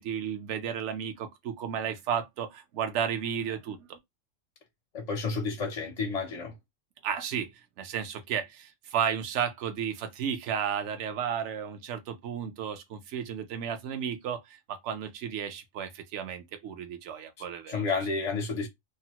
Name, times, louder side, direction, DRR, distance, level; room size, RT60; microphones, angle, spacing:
voice 1, 0.0-4.0 7.0-7.5 7.8-17.9, right 8 dB, 70° right, 0.9 m, -33 dB
voice 2, 4.9-6.5 17.7-18.7, left 4 dB, 55° left, 0.4 m, -30 dB
3.2 x 2.0 x 2.8 m
omnidirectional pair, 1.3 m